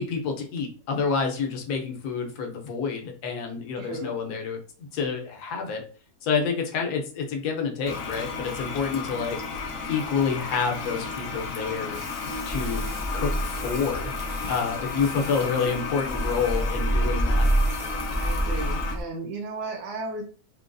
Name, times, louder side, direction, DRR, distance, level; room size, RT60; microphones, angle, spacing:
voice 1, 0.0-5.8 6.2-9.4 9.9-12.0 12.5-12.9 13.1-14.1 14.5-17.5, left 5 dB, 85° left, 2 dB, 1.3 m, -28 dB
voice 2, 3.8-4.1 18.1-20.2, right 3 dB, 85° right, 2 dB, 1.2 m, -35 dB
Toilet flush, 7.8-19.0, left 4 dB, 65° left, 0.9 m, -33 dB
sound 1, 11.1-19.0, right 1 dB, 30° right, 0.5 m, -29 dB
3.8 x 2.3 x 2.5 m, 0.39 s
omnidirectional pair, 1.6 m